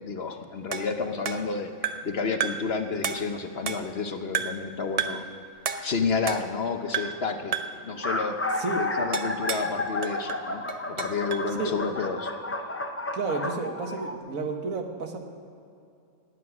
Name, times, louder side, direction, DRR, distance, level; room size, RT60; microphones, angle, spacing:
voice 1, 0.0-5.2 5.8-7.6 7.8-8.4 8.8-12.3, left 4 dB, 50° left, 6 dB, 1.0 m, -30 dB
sound 1, 0.7-2.2 2.4-2.7 3.0-4.0 4.3-4.7 5.0-5.3 5.7-6.7 6.9-7.3 7.5-7.8 9.1-9.7 10.0-11.5, right 6 dB, 50° right, 0.4 m, -32 dB
sound 2, 5.9-6.2 7.1-7.2 7.3-7.4 7.8-14.2, left 2 dB, 20° left, 0.3 m, -32 dB
voice 2, 11.5-11.8 13.1-15.2, right 4 dB, 75° right, 4 dB, 1.7 m, -31 dB
19.0 x 8.6 x 6.1 m, 2.6 s
omnidirectional pair, 1.4 m